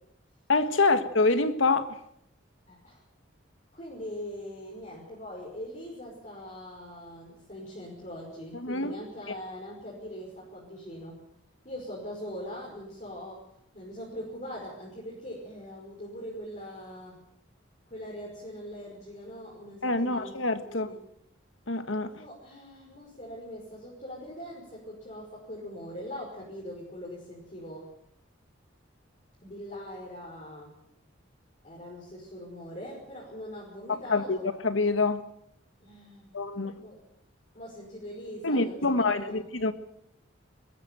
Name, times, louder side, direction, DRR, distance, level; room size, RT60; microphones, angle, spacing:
voice 1, 0.5-1.9 8.5-9.0 19.8-20.9 21.7-22.1 33.9-34.4 34.6-35.2 36.3-36.7 38.4-39.7, left 3 dB, 75° left, 10 dB, 1.7 m, -26 dB
voice 2, 2.7-3.0 3.7-11.1 11.6-13.4 13.7-17.2 17.9-20.3 20.7-21.0 22.2-27.9 29.4-30.7 31.6-34.5 35.8-37.0 37.5-39.4, equal, 40° left, -4 dB, 5.6 m, -42 dB
20.5 x 15.0 x 9.1 m, 0.75 s
head